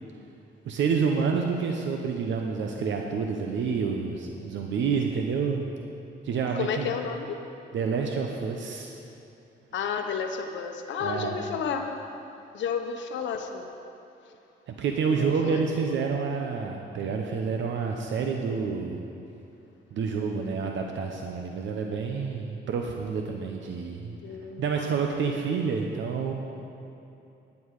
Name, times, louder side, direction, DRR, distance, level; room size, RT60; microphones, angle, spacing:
voice 1, 0.6-5.6 6.2-6.9 7.7-8.9 11.0-11.3 14.7-19.0 19.9-24.2 24.6-26.3, right 5 dB, 70° right, 2 dB, 0.8 m, -28 dB
voice 2, 6.5-7.4 9.7-11.9 12.5-13.7 15.2-15.9 24.2-24.8, left 6 dB, 70° left, 5 dB, 0.9 m, -32 dB
10.0 x 9.5 x 4.8 m, 2.7 s
cardioid pair, 90°, 20 cm